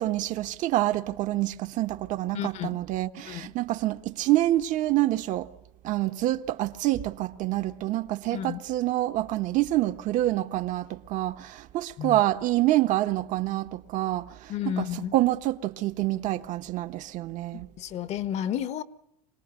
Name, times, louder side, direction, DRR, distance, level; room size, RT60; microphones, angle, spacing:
voice 1, 0.0-5.5 5.8-17.7, right 15 dB, 55° right, 1.3 m, -27 dB
voice 2, 2.3-2.8 3.2-3.5 8.3-8.6 12.0-12.2 14.5-15.2 17.5-18.8, left 10 dB, 45° left, 1.2 m, -32 dB
26.0 x 18.5 x 8.3 m
supercardioid pair, 120°, 15 cm